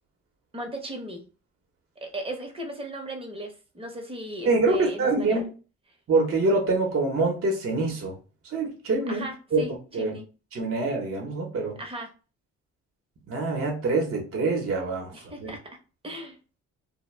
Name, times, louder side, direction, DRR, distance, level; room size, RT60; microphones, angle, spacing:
voice 1, 0.5-1.2 2.0-5.4 9.1-10.3 11.8-12.1 15.1-15.8 16.0-16.4, right 1 dB, 20° right, 0.8 m, -37 dB
voice 2, 4.4-5.4 6.1-8.2 8.5-9.3 9.5-9.7 9.9-10.2 10.5-11.8 13.3-15.1 15.4-15.5, right 3 dB, 45° right, 0.9 m, -25 dB
2.2 x 2.2 x 3.2 m
cardioid pair, 90°, 30 cm